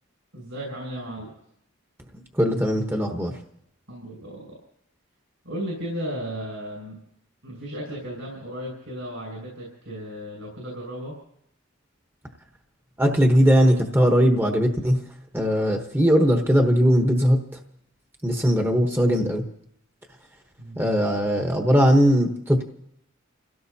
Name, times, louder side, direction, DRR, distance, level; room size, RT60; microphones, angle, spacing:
voice 1, 0.3-1.3 3.9-4.6 5.4-6.9 7.4-11.1 20.6-20.8, equal, 75° right, -3 dB, 6.5 m, -35 dB
voice 2, 2.4-3.3 13.0-15.0 15.3-17.4 18.2-19.4 20.8-22.6, equal, 10° right, 3 dB, 1.0 m, -19 dB
29.5 x 17.0 x 2.8 m, 0.76 s
head